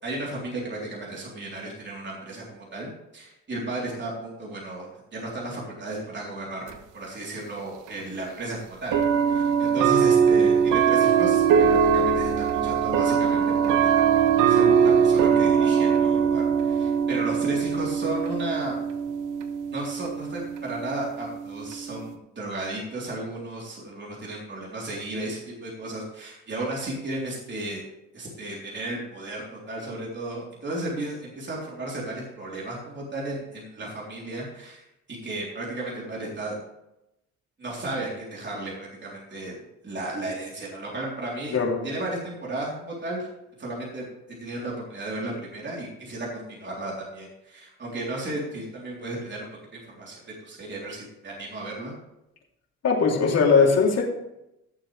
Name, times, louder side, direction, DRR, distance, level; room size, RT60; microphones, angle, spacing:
voice 1, 0.0-11.4 11.7-14.0 14.4-18.8 19.7-27.8 28.1-36.6 37.6-39.5 39.8-41.6 41.8-43.3 43.6-44.1 44.4-50.2 50.4-51.9, right 2 dB, 35° right, -4 dB, 3.7 m, -34 dB
sound 1, 6.7-6.8 7.9-8.0 8.9-22.1, right 7 dB, 90° right, 1.1 m, -22 dB
voice 2, 52.8-54.0, left 5 dB, 55° left, -1 dB, 3.2 m, -20 dB
16.5 x 7.4 x 3.4 m, 0.88 s
cardioid pair, 90°, 30 cm